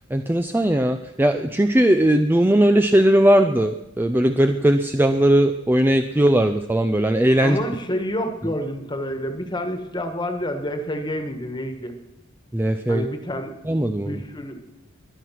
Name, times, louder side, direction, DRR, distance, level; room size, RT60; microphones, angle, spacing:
voice 1, 0.1-7.6 12.5-13.1 13.7-14.2, right 1 dB, 10° right, 7 dB, 0.4 m, -18 dB
voice 2, 7.4-12.0 12.9-13.5 13.9-14.6, equal, 20° left, 7 dB, 1.5 m, -28 dB
20.0 x 11.0 x 5.9 m, 0.92 s
head